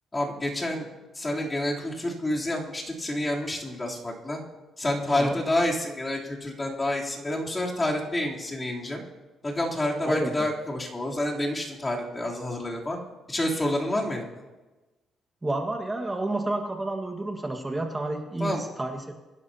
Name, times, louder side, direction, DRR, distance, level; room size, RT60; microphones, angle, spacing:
voice 1, 0.1-0.9 1.1-4.4 4.8-9.0 9.4-13.0 13.3-14.3 18.4-18.7, left 1 dB, 20° left, -3 dB, 3.3 m, -28 dB
voice 2, 5.1-5.4 10.0-10.5 15.4-19.1, right 2 dB, 15° right, 2 dB, 1.6 m, -30 dB
25.0 x 11.0 x 2.9 m, 1.2 s
cardioid pair, 90°, 0 cm